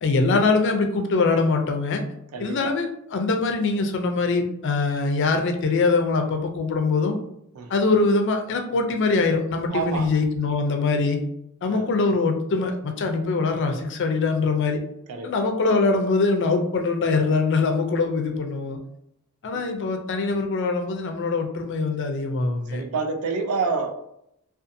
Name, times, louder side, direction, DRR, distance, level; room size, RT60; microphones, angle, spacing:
voice 1, 0.0-2.0 2.4-7.2 7.7-11.2 11.6-14.8 15.2-18.8 19.4-22.8, left 3 dB, 55° left, 4 dB, 0.4 m, -23 dB
voice 2, 2.3-2.7 7.6-7.8 9.7-10.1 11.6-11.9 15.1-15.3 19.5-19.6 22.7-23.9, right 4 dB, 75° right, 6 dB, 0.4 m, -28 dB
2.5 x 2.3 x 2.6 m, 0.76 s
head